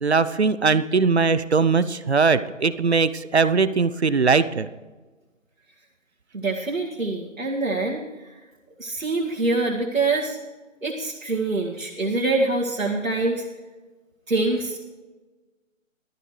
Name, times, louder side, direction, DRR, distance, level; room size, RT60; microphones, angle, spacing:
voice 1, 0.0-4.7, right 4 dB, 55° right, 14 dB, 0.7 m, -20 dB
voice 2, 6.3-8.0 8.8-10.4 10.8-13.5 14.3-14.8, right 2 dB, 85° right, -3 dB, 2.5 m, -25 dB
18.0 x 13.5 x 3.2 m, 1.2 s
figure-of-eight pair, 160°, 39 cm